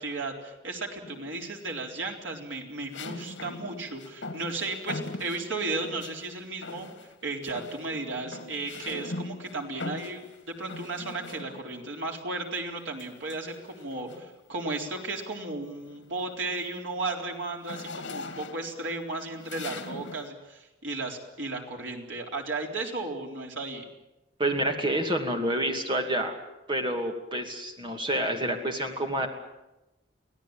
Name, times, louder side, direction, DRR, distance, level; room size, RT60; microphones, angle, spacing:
voice 1, 0.0-6.9 7.2-23.8, right 3 dB, 85° right, 1 dB, 3.9 m, -34 dB
sound 1, 1.1-1.6 2.9-6.3 6.6-7.2 7.4-11.9 13.0-14.4 14.9-15.2 15.5-20.3, left 2 dB, 80° left, 2.1 m, -41 dB
voice 2, 24.4-26.4 26.7-29.3, right 1 dB, 25° right, 3 dB, 2.6 m, -28 dB
24.5 x 17.0 x 8.9 m, 0.98 s
head